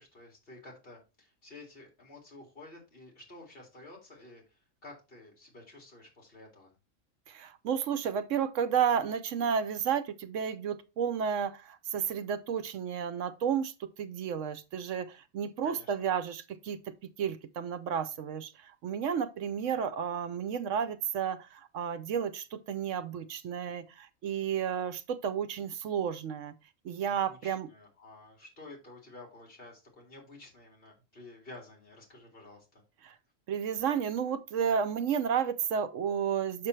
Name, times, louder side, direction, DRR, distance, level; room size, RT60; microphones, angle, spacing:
voice 1, 0.0-6.7 15.6-15.9 26.9-32.8, left 2 dB, 45° left, 2.5 m, -51 dB
voice 2, 7.3-26.5 26.8-27.7 33.0-33.1 33.5-36.7, right 7 dB, 75° right, 1.0 m, -32 dB
6.6 x 6.1 x 3.1 m
omnidirectional pair, 1.3 m